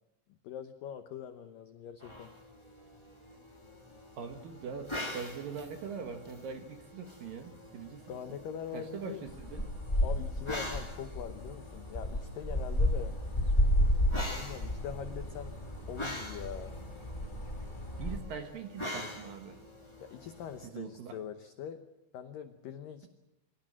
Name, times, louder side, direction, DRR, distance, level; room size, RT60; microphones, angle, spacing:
voice 1, 0.4-2.4 7.9-9.3 10.0-13.2 14.3-15.6 15.9-16.8 20.0-21.9 22.1-23.1, left 8 dB, 80° left, 9 dB, 2.0 m, -43 dB
sound 1, 2.0-20.7, left 1 dB, 20° left, 0.7 m, -45 dB
voice 2, 4.1-8.1 8.7-9.7 18.0-19.6 20.7-21.2, right 6 dB, 60° right, 6 dB, 2.6 m, -42 dB
sound 2, 9.3-18.2, equal, 65° left, 0.4 m, -32 dB
27.0 x 17.5 x 8.7 m, 0.97 s
omnidirectional pair, 5.4 m